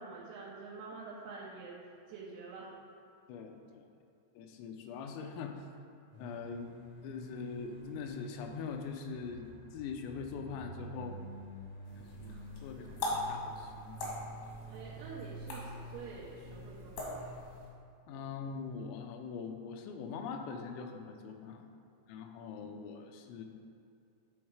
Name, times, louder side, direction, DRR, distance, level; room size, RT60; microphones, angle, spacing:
voice 1, 0.0-1.8 2.1-2.7 12.7-13.2 14.7-17.4, right 4 dB, 90° right, -5 dB, 3.5 m, -47 dB
voice 2, 3.3-3.9 4.4-5.7 6.2-6.7 7.0-11.2 12.0-12.4 12.6-14.0 18.1-21.7 22.1-23.5, left 5 dB, 85° left, 4 dB, 3.2 m, -42 dB
sound 1, 6.1-17.4, right 2 dB, 70° right, 1.2 m, -49 dB
sound 2, 11.8-17.7, left 2 dB, 70° left, 1.8 m, -42 dB
10.5 x 3.6 x 4.7 m, 2.6 s
omnidirectional pair, 5.7 m